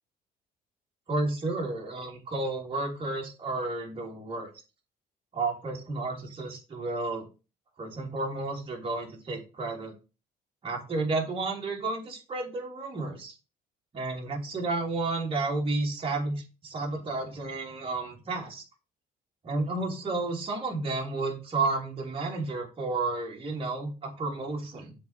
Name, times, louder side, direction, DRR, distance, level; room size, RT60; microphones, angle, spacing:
voice 1, 1.1-4.5 5.3-7.3 7.8-9.9 10.6-13.3 13.9-18.6 19.4-24.9, right 3 dB, 35° right, -1 dB, 3.1 m, -32 dB
7.5 x 4.3 x 5.2 m, 0.32 s
cardioid pair, 110°, 17 cm